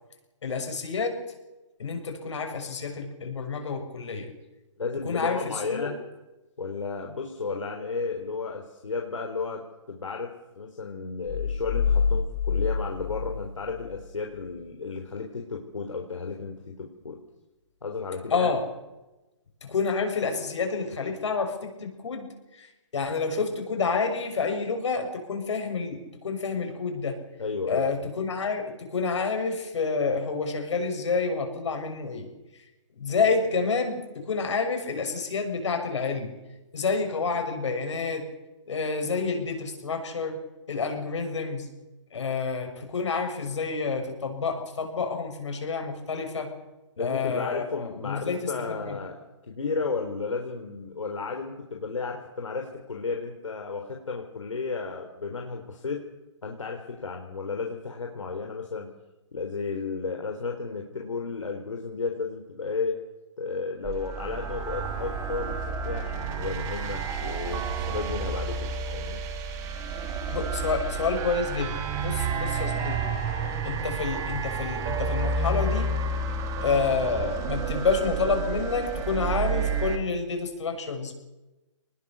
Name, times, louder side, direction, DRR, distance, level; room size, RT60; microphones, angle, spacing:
voice 1, 0.4-1.2 1.8-4.3 5.0-5.9 18.3-18.6 19.6-27.2 27.6-32.3 33.0-36.3 36.7-38.3 38.7-40.4 40.7-41.7 42.1-46.5 47.0-49.0 70.3-73.0 73.6-76.0 76.6-81.1, left 4 dB, 70° left, 4 dB, 6.8 m, -29 dB
voice 2, 4.8-6.0 6.6-17.2 17.8-18.5 27.4-28.1 47.0-49.2 49.4-56.0 56.4-58.9 59.3-63.0 63.4-69.2, left 4 dB, 85° left, 2 dB, 3.6 m, -33 dB
sound 1, 11.3-14.0, left 6 dB, 50° left, 5.6 m, -27 dB
sound 2, 63.8-80.0, right 4 dB, 20° right, 2.4 m, -30 dB
24.5 x 20.0 x 6.9 m, 1.0 s
hypercardioid pair, 150°, 16 cm